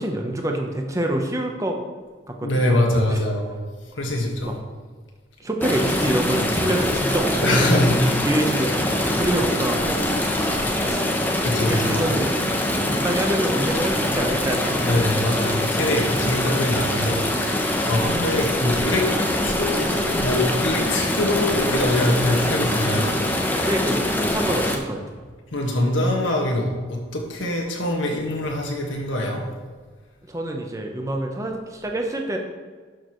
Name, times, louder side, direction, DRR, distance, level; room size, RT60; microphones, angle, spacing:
voice 1, 0.0-1.8 2.3-3.2 4.4-4.5 5.4-7.7 8.2-10.0 10.4-10.5 10.8-11.0 11.7-12.3 12.9-15.5 23.6-25.0 30.3-32.4, right 1 dB, 15° right, 2 dB, 0.9 m, -26 dB
voice 2, 2.4-3.5 3.9-4.6 7.4-8.2 11.4-12.1 14.8-17.2 17.9-19.1 19.4-23.1 25.5-29.4, left 1 dB, 85° left, 0 dB, 1.8 m, -23 dB
sound 1, 5.6-24.8, left 1 dB, 10° left, 0.8 m, -23 dB
11.5 x 6.7 x 3.2 m, 1.5 s
head